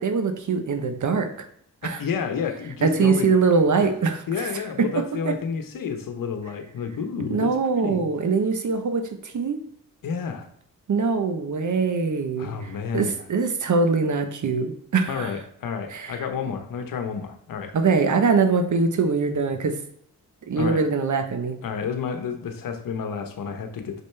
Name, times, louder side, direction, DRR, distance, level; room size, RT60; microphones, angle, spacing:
voice 1, 0.0-1.5 1.8-2.0 2.8-4.5 4.8-5.3 7.3-9.6 10.9-15.3 15.9-16.2 17.7-19.8 20.5-21.6, right 4 dB, 55° right, 7 dB, 1.1 m, -23 dB
voice 2, 1.8-3.3 4.3-8.0 10.0-10.5 12.4-13.2 15.1-17.7 20.6-20.8 21.6-24.0, left 6 dB, 70° left, 6 dB, 1.1 m, -30 dB
6.4 x 5.3 x 3.4 m, 0.69 s
supercardioid pair, 45°, 35 cm